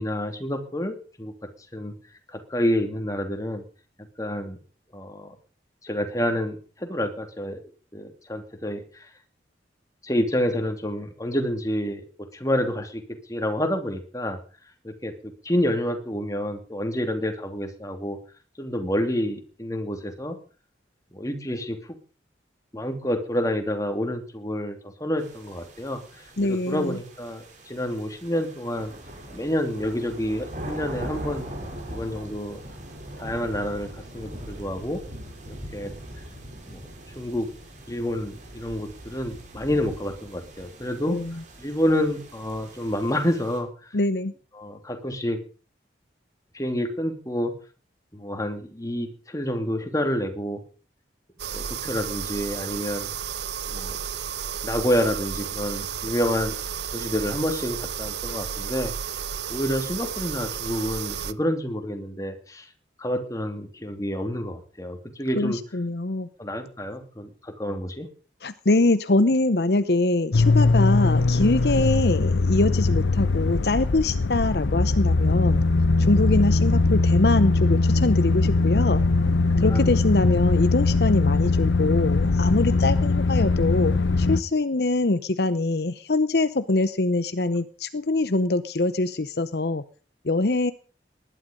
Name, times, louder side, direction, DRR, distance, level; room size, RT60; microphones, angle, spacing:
voice 1, 0.0-1.3 1.7-1.9 2.3-3.6 4.2-4.6 4.9-5.3 5.8-7.6 7.9-9.1 10.0-12.0 12.3-13.0 13.3-14.4 14.8-15.1 15.4-18.2 18.6-20.4 21.1-21.8 22.7-28.9 29.3-31.5 31.9-32.6 33.2-35.0 35.5-35.9 36.7-36.8 37.1-37.5 37.9-41.2 41.6-43.9 44.6-45.4 46.5-47.5 48.1-50.6 51.5-53.1 53.7-54.0 54.6-56.6 56.9-58.9 59.5-62.7 63.0-65.6 66.4-68.1 79.1-79.9 82.7-83.2, equal, 20° left, 6 dB, 2.8 m, -28 dB
sound 1, 25.2-43.6, right 1 dB, 45° right, 6.9 m, -41 dB
voice 2, 26.4-27.0 41.1-41.4 43.9-44.3 65.4-66.3 68.4-75.6 76.0-79.0 79.6-89.8 90.2-90.7, left 2 dB, 60° left, 13 dB, 0.8 m, -23 dB
sound 2, 51.4-61.3, right 8 dB, 65° right, 0.9 m, -32 dB
sound 3, 70.3-84.4, left 3 dB, 85° left, 0.8 m, -21 dB
19.5 x 12.0 x 5.3 m, 0.40 s
head